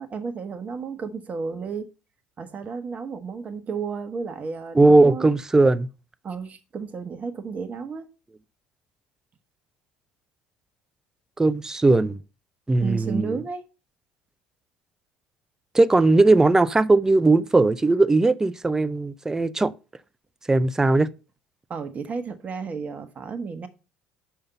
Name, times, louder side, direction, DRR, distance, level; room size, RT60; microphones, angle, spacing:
voice 1, 0.0-1.9 2.4-5.4 6.2-8.1 12.8-13.6 21.7-23.7, right 5 dB, 35° right, 1.0 m, -32 dB
voice 2, 4.8-5.9 11.4-12.2 12.7-13.4 15.7-19.7 20.5-21.1, right 2 dB, 15° right, 0.4 m, -18 dB
5.7 x 5.1 x 5.5 m
hypercardioid pair, 60°, 4 cm